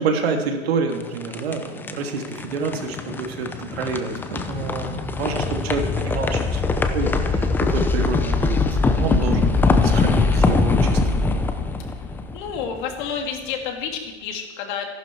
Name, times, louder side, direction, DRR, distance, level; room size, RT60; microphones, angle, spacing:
voice 1, 0.0-1.7 2.0-8.6 9.0-11.2, right 4 dB, 60° right, 3 dB, 3.0 m, -28 dB
sound 1, 0.9-13.0, left 3 dB, 5° left, 0.7 m, -22 dB
voice 2, 12.3-14.9, left 7 dB, 45° left, 3 dB, 3.0 m, -29 dB
25.0 x 11.5 x 4.8 m, 1.2 s
hypercardioid pair, 145°, 34 cm